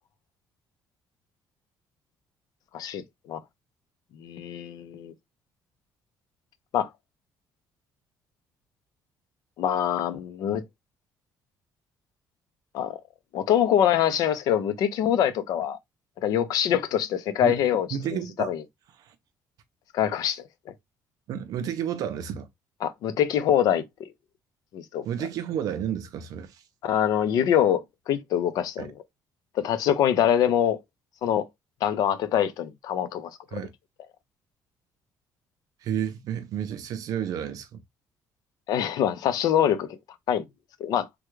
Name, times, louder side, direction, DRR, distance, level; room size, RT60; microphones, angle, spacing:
voice 1, 4.2-5.1 6.7-6.9 9.6-10.6 12.7-13.0 13.3-15.8 16.2-17.9 18.4-18.6 19.9-20.4 22.8-24.1 24.7-25.1 26.8-28.9 29.6-30.8 31.2-31.5 31.8-33.6 38.7-40.0 40.3-40.4 40.8-41.1, left 10 dB, 65° left, 0.5 m, -24 dB
voice 2, 17.9-18.5 19.0-19.1 21.3-22.5 25.0-26.6 28.8-28.9 33.5-33.7 35.8-37.8, right 9 dB, 60° right, 0.5 m, -31 dB
3.5 x 2.2 x 3.1 m
cardioid pair, 170°, 7 cm